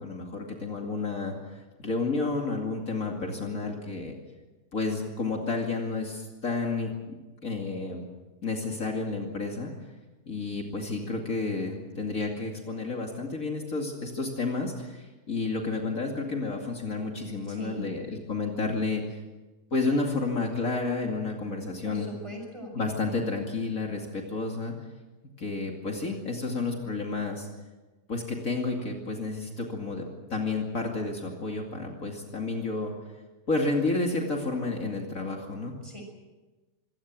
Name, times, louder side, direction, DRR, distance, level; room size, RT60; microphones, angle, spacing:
voice 1, 0.0-4.1 4.7-8.0 8.4-9.7 10.3-19.2 19.7-22.1 22.7-24.7 25.4-27.5 28.1-30.0 30.3-32.9 33.5-35.7, left 3 dB, 50° left, 1 dB, 2.9 m, -31 dB
voice 2, 17.5-18.0 21.8-22.9 35.8-36.0, right 1 dB, 15° right, 2 dB, 6.2 m, -40 dB
25.0 x 17.5 x 7.5 m, 1.2 s
omnidirectional pair, 1.8 m